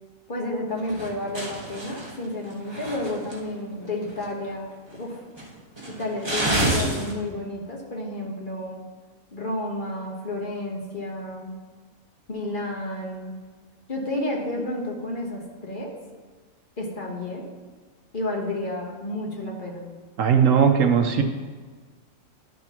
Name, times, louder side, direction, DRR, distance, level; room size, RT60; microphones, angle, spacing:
voice 1, 0.3-4.7 5.0-5.2 5.9-8.8 9.3-11.5 12.3-13.4 13.9-16.0 16.8-17.5 18.1-19.9, left 1 dB, 40° left, -2 dB, 1.3 m, -31 dB
sound 1, 0.8-3.5 3.8-4.5 4.9-5.0 5.4-7.1, right 1 dB, 20° right, 1.3 m, -28 dB
voice 2, 20.2-21.2, right 7 dB, 70° right, 6 dB, 1.0 m, -18 dB
11.5 x 6.0 x 3.0 m, 1.4 s
omnidirectional pair, 1.5 m